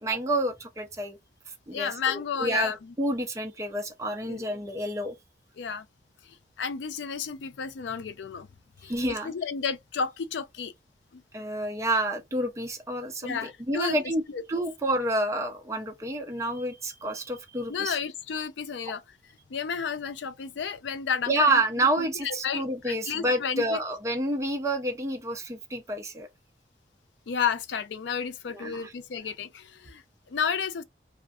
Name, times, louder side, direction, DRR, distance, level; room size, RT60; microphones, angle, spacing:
voice 1, 0.0-1.2 1.5-5.2 8.8-9.3 11.3-14.2 14.5-18.0 18.8-18.9 21.3-26.3 28.5-28.9, right 1 dB, 15° right, 0.5 m, -29 dB
voice 2, 1.7-2.9 4.3-4.4 5.6-5.9 6.2-8.5 8.8-8.9 9.2-10.7 11.1-11.2 13.2-14.0 14.3-14.4 17.7-19.0 19.5-21.6 22.0-23.8 27.3-30.8, left 6 dB, 85° left, 0.4 m, -32 dB
2.6 x 2.4 x 2.3 m
head